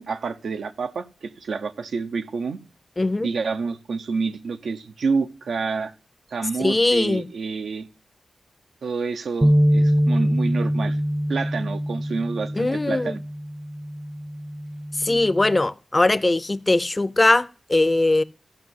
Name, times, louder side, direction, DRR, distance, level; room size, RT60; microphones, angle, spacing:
voice 1, 0.0-2.6 3.2-5.9 6.3-7.9 8.8-11.0 11.3-13.2, right 4 dB, 85° right, 0.6 m, -28 dB
voice 2, 3.0-3.3 6.6-7.2 12.6-13.2 15.0-18.2, left 2 dB, 25° left, 0.4 m, -20 dB
sound 1, 9.4-15.7, equal, 20° right, 0.6 m, -24 dB
14.0 x 5.2 x 5.5 m
wide cardioid pair, 80°, 0 cm